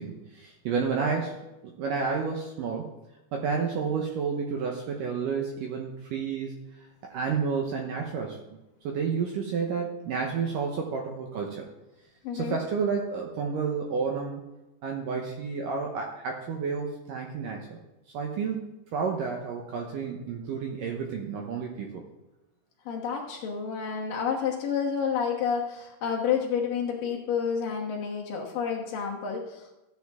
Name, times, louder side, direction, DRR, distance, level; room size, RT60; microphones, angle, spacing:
voice 1, 0.0-2.9 3.3-6.5 7.1-8.4 8.8-11.7 12.3-14.4 14.8-17.8 18.1-22.0, right 5 dB, 70° right, 2 dB, 2.1 m, -30 dB
voice 2, 12.2-12.6 22.9-29.7, left 7 dB, 65° left, -1 dB, 2.6 m, -29 dB
14.0 x 8.8 x 3.6 m, 0.98 s
omnidirectional pair, 4.8 m